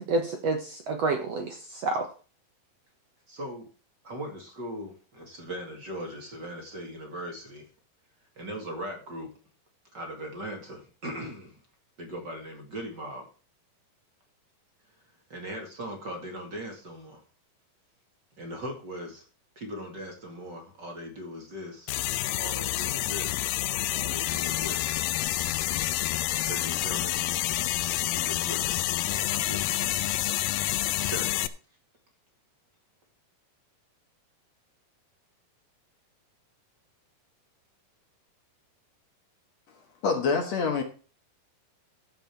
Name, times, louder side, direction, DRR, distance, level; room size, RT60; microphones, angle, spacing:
voice 1, 0.0-2.1, right 3 dB, 60° right, 2.0 m, -29 dB
voice 2, 3.3-3.7 4.0-7.7 8.4-9.3 9.9-11.6 12.0-13.3 15.3-17.2 18.4-19.3 19.6-22.0 22.4-23.5 23.9-25.0 26.4-27.2 28.1-30.3 31.0-31.5, equal, 35° right, 2.5 m, -39 dB
sound 1, 21.9-31.5, left 15 dB, 80° left, 2.3 m, -28 dB
voice 3, 40.0-40.8, left 5 dB, 55° left, 2.3 m, -25 dB
12.5 x 7.7 x 4.6 m
omnidirectional pair, 4.1 m